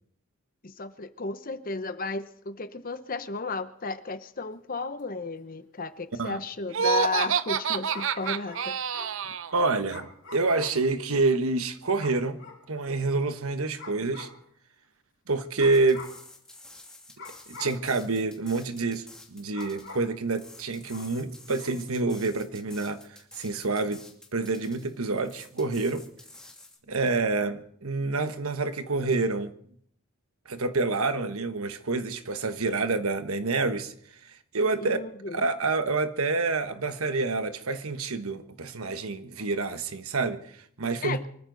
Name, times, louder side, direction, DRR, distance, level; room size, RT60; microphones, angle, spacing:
voice 1, 0.6-9.0 34.8-35.4 41.0-41.3, left 3 dB, 40° left, 0.9 m, -34 dB
sound 1, 5.0-5.1 7.9-10.9 12.0-12.7 13.8-14.4 15.6-16.3 17.2-17.9 19.5-20.2 20.9-21.2 21.6-21.9, left 3 dB, 60° left, 3.2 m, -45 dB
Laughter, 6.7-9.5, right 7 dB, 60° right, 0.6 m, -27 dB
voice 2, 9.5-12.4 12.7-14.3 15.3-16.0 17.5-24.0 24.3-26.0 26.9-29.5 30.4-33.9 34.2-35.0 35.3-41.2, right 3 dB, 80° right, 1.2 m, -28 dB
sound 2, 15.7-26.8, left 2 dB, 5° left, 2.6 m, -50 dB
24.0 x 14.0 x 4.0 m
head